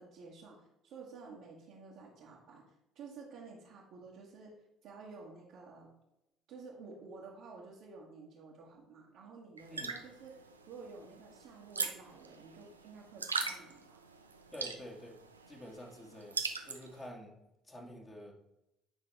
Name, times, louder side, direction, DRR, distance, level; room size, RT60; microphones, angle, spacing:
voice 1, 0.0-4.5 4.8-5.9 6.5-14.0, right 4 dB, 60° right, -6 dB, 1.5 m, -52 dB
sound 1, 9.6-17.1, right 4 dB, 85° right, 0.5 m, -41 dB
voice 2, 14.5-15.2 15.5-17.4 17.6-18.3, left 1 dB, 20° left, -1 dB, 2.0 m, -48 dB
9.3 x 5.7 x 3.4 m, 0.88 s
figure-of-eight pair, 55°, 0 cm